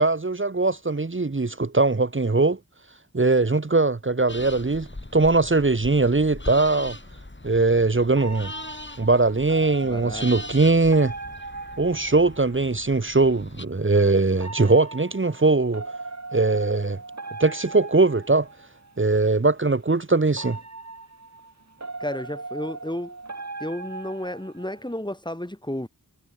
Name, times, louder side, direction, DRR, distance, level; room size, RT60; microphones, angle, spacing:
voice 1, 0.0-2.6 3.1-4.9 5.1-7.0 7.4-8.5 9.0-11.1 11.8-15.8 16.3-17.0 17.4-18.5 19.0-20.6, right 3 dB, 35° right, 1.4 m, -21 dB
sound 1, 4.3-13.6, left 2 dB, 35° left, 6.0 m, -40 dB
sound 2, 8.2-12.8 14.3-19.0 20.3-24.9, right 3 dB, 50° right, 3.4 m, -39 dB
voice 2, 9.8-10.3 22.0-23.2 23.6-25.9, left 1 dB, 15° left, 4.6 m, -32 dB
cardioid pair, 40°, 34 cm